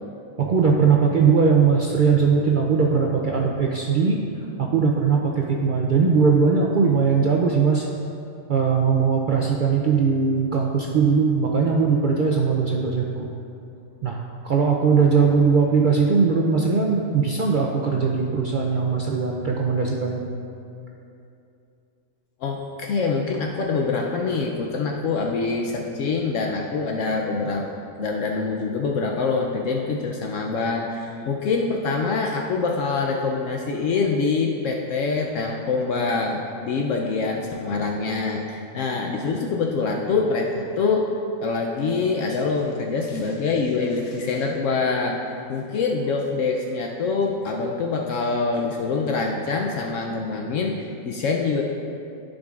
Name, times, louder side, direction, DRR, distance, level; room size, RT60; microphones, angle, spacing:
voice 1, 0.4-4.2 4.6-7.9 8.5-13.3 14.0-20.3, right 5 dB, 65° right, -1 dB, 0.5 m, -20 dB
voice 2, 22.4-27.7 28.0-41.1 41.4-45.2 45.5-51.6, left 4 dB, 70° left, 0 dB, 0.9 m, -25 dB
14.0 x 5.1 x 2.4 m, 2.6 s
omnidirectional pair, 1.4 m